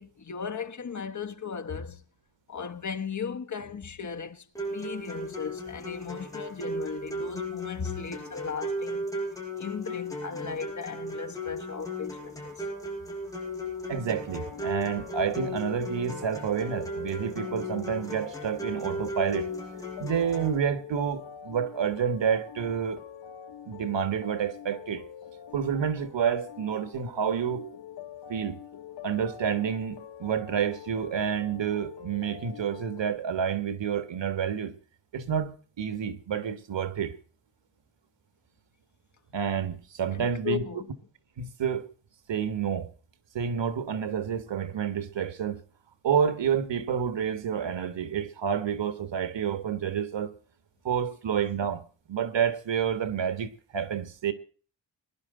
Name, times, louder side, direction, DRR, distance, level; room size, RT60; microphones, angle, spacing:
voice 1, 0.0-2.0 2.5-9.1 9.6-12.7 40.1-40.9, left 6 dB, 40° left, 1.2 m, -36 dB
sound 1, 4.6-20.6, equal, 5° left, 6.7 m, -36 dB
voice 2, 13.9-19.5 20.0-23.0 23.7-25.0 25.5-27.7 28.3-28.6 29.0-34.7 35.1-37.2 39.3-40.6 41.4-41.9 42.3-42.9 43.4-45.6 46.0-50.3 50.8-51.8 52.1-54.3, right 7 dB, 90° right, 1.7 m, -29 dB
sound 2, 14.3-33.2, left 8 dB, 70° left, 1.2 m, -45 dB
21.5 x 11.5 x 3.8 m
wide cardioid pair, 160°, 43 cm